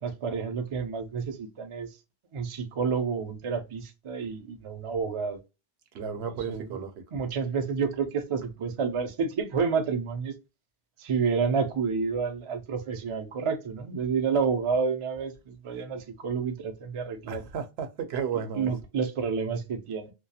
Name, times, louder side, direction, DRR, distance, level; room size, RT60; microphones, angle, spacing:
voice 1, 0.0-1.9 2.3-5.4 6.3-6.8 7.1-10.3 11.0-17.4 18.3-20.1, right 5 dB, 50° right, 0.4 m, -29 dB
voice 2, 5.9-6.9 17.3-18.7, right 7 dB, 80° right, 0.8 m, -33 dB
2.3 x 2.2 x 2.6 m
omnidirectional pair, 1.1 m